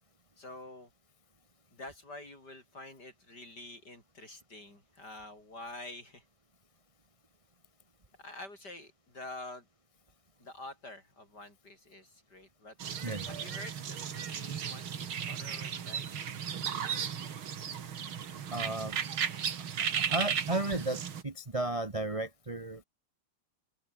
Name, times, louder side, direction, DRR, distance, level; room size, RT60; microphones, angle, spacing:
voice 1, 0.4-0.9 1.7-6.2 8.2-9.7 10.4-12.8 13.3-16.1, left 2 dB, 50° left, 8.5 m, -47 dB
sound 1, 12.8-21.2, right 8 dB, 70° right, 2.6 m, -35 dB
voice 2, 18.5-19.0 20.0-22.8, right 2 dB, 20° right, 1.2 m, -34 dB
omnidirectional pair, 2.3 m